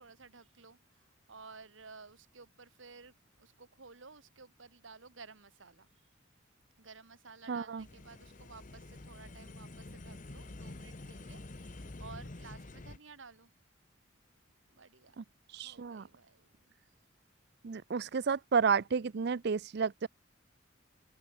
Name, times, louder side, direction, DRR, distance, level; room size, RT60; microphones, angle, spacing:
voice 1, 0.0-5.9 6.8-13.5 14.7-15.2 15.6-16.7, right 4 dB, 80° right, 1.9 m, -54 dB
voice 2, 7.5-7.8 15.2-15.3 15.5-16.1 17.6-20.1, right 6 dB, 60° right, 0.5 m, -31 dB
sound 1, 7.8-13.0, left 2 dB, 40° left, 1.1 m, -48 dB
head